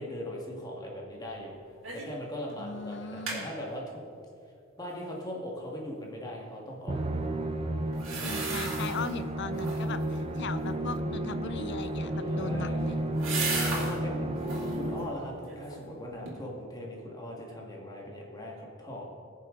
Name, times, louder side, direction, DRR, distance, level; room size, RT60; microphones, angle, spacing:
voice 1, 0.0-1.6 1.9-4.0 4.8-7.0 8.1-8.5 12.2-12.8 13.2-14.3 14.7-19.0, equal, 20° left, -2 dB, 1.8 m, -39 dB
sound 1, 1.8-2.2 2.5-2.6 2.9-3.4 7.9-9.1 9.5-10.0 12.0-14.0 14.4-14.8 15.3-15.9 16.3-16.4, right 3 dB, 75° right, 2.9 m, -36 dB
voice 2, 2.6-3.5 8.2-13.0, left 4 dB, 60° left, 12 dB, 0.6 m, -38 dB
Musical instrument, 6.9-15.4, right 1 dB, 30° right, 0.8 m, -32 dB
20.5 x 7.0 x 3.8 m, 2.4 s
head